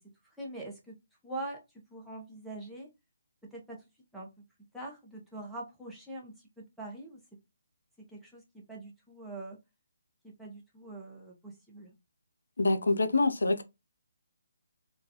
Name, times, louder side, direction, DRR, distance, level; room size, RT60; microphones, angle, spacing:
voice 1, 0.4-1.0 1.2-2.9 3.5-3.8 4.1-4.3 4.7-7.2 8.1-9.6 10.2-11.9, right 2 dB, ahead, 0.8 m, -43 dB
voice 2, 12.6-13.6, left 2 dB, 75° left, 0.5 m, -26 dB
3.7 x 2.3 x 2.8 m
figure-of-eight pair, 150°, 0 cm